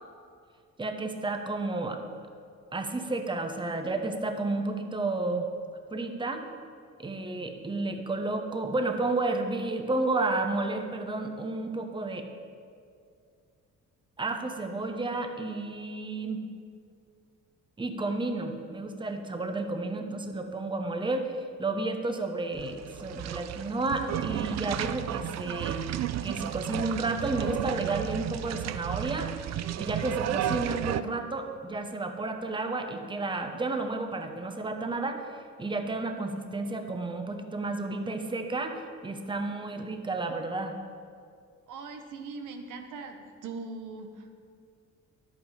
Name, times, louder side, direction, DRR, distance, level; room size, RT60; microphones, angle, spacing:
voice 1, 0.8-2.0 2.7-5.5 5.9-6.4 7.0-12.2 14.2-16.4 17.8-25.8 26.2-40.7, right 2 dB, 15° right, 5 dB, 1.0 m, -31 dB
sound 1, 22.5-31.0, right 11 dB, 60° right, 0.4 m, -33 dB
voice 2, 41.7-44.3, right 4 dB, 85° right, 5 dB, 1.1 m, -40 dB
10.5 x 8.4 x 4.9 m, 2.3 s
cardioid pair, 90°, 30 cm